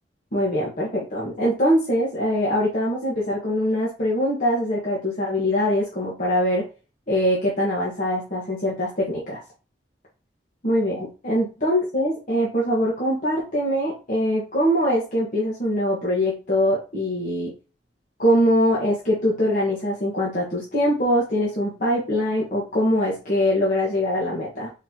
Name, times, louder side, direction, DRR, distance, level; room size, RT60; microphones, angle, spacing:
voice 1, 0.3-6.7 7.1-9.4 10.6-17.5 18.2-24.7, equal, 45° left, -6 dB, 1.4 m, -23 dB
4.2 x 4.0 x 2.9 m, 0.32 s
head